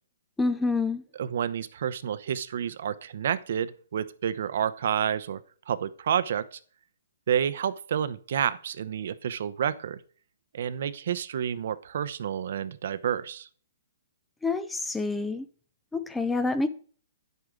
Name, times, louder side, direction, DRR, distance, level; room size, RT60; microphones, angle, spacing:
voice 1, 0.4-1.0 14.4-15.4 15.9-16.7, left 3 dB, 5° left, 12 dB, 0.4 m, -27 dB
voice 2, 1.1-5.4 5.7-6.6 7.3-10.0 10.5-13.5, right 9 dB, 55° right, 15 dB, 0.8 m, -29 dB
10.5 x 8.0 x 3.8 m, 0.43 s
hypercardioid pair, 170°, 0 cm